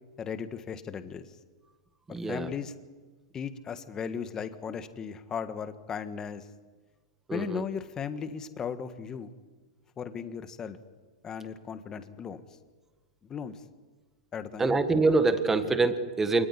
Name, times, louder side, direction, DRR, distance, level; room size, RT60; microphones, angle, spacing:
voice 1, 0.2-1.3 2.1-2.7 3.3-6.5 7.3-9.3 10.0-10.8 11.2-12.4 13.2-13.6 14.3-14.8, left 6 dB, 15° left, 10 dB, 1.6 m, -36 dB
voice 2, 2.1-2.5 7.3-7.6 14.6-16.5, right 3 dB, 10° right, 9 dB, 1.6 m, -25 dB
27.5 x 19.0 x 9.9 m, 1.4 s
supercardioid pair, 155°, 3 cm